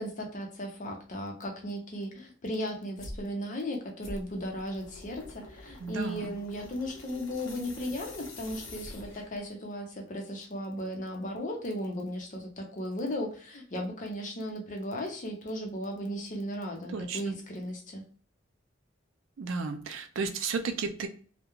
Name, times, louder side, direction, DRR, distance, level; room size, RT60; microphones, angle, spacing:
voice 1, 0.0-18.0, equal, 40° left, 2 dB, 0.6 m, -36 dB
sound 1, 3.0-3.3 4.0-9.4, left 2 dB, 85° left, 0.6 m, -46 dB
voice 2, 5.8-6.3 16.9-17.3 19.4-21.1, right 4 dB, 80° right, 7 dB, 0.4 m, -33 dB
2.3 x 2.1 x 2.9 m, 0.42 s
head